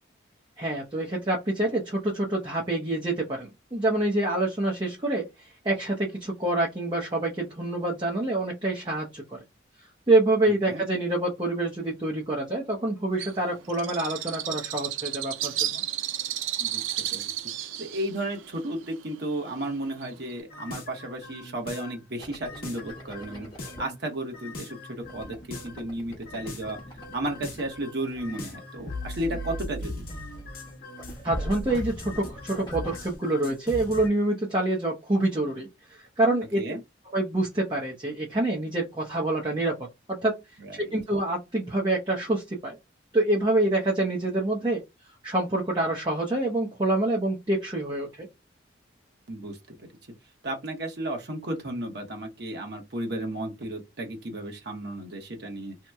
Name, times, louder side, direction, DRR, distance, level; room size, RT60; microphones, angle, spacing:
voice 1, 0.6-9.4 10.1-15.8 31.2-36.6 37.1-39.8 40.1-40.4 40.8-42.8 43.1-44.8 45.2-48.3, right 2 dB, 25° right, 0.7 m, -26 dB
Bird, 13.2-20.4, right 12 dB, 85° right, 0.4 m, -33 dB
voice 2, 16.6-17.2 17.6-23.5 23.8-26.8 27.1-30.0 36.6-36.8 40.6-40.9 49.3-49.9 50.4-55.8, right 1 dB, 60° right, 0.9 m, -34 dB
sound 1, 20.5-22.0 22.4-24.0 24.3-25.9 26.2-34.1, left 1 dB, 50° left, 0.8 m, -39 dB
sound 2, 22.2-23.8 25.0-30.1 30.4-30.7 31.0-33.1, equal, 20° left, 1.0 m, -45 dB
2.9 x 2.1 x 3.4 m
head